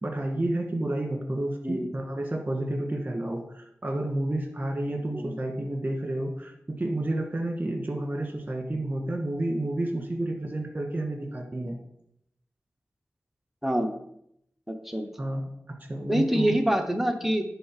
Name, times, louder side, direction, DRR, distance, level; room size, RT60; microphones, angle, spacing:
voice 1, 0.0-11.8 15.2-15.4 15.9-16.6, right 1 dB, 30° right, 2 dB, 1.9 m, -30 dB
voice 2, 13.6-13.9 14.7-15.1 16.1-17.4, equal, 5° right, 5 dB, 1.0 m, -25 dB
10.5 x 3.6 x 4.9 m, 0.75 s
wide cardioid pair, 55°, 5 cm